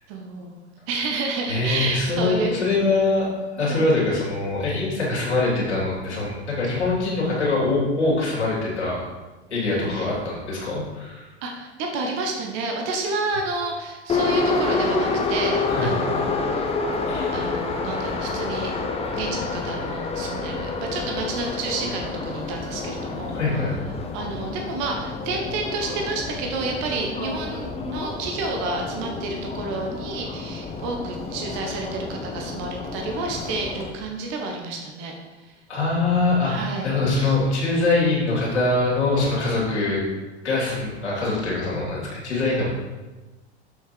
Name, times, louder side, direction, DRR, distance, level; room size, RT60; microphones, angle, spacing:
voice 1, 0.1-0.6 0.9-2.6 3.6-3.9 9.9-10.1 11.4-16.8 17.3-18.7 19.1-23.4 24.1-35.1 35.4-35.5 36.4-37.4 39.2-39.7, right 3 dB, 45° right, 2 dB, 1.4 m, -30 dB
voice 2, 1.5-3.3 3.5-9.0 9.5-11.3 15.7-15.9 17.1-17.3 23.3-23.8 35.7-40.0 40.4-42.7, left 3 dB, 75° left, -5 dB, 2.9 m, -23 dB
Subway metro underground, 14.1-33.9, left 3 dB, 15° left, 1.0 m, -28 dB
7.3 x 5.9 x 4.6 m, 1.2 s
figure-of-eight pair, 85°, 34 cm